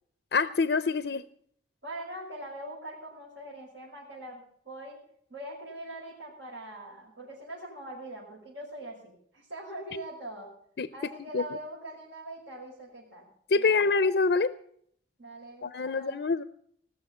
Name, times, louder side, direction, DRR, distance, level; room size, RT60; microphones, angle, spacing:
voice 1, 0.3-1.2 10.8-10.9 11.3-11.4 13.5-14.5 15.6-16.4, left 4 dB, 60° left, 15 dB, 0.5 m, -25 dB
voice 2, 1.8-5.0 5.3-10.5 10.9-14.0 15.2-16.2, right 1 dB, 80° right, -7 dB, 5.6 m, -42 dB
19.5 x 6.6 x 8.4 m, 0.65 s
head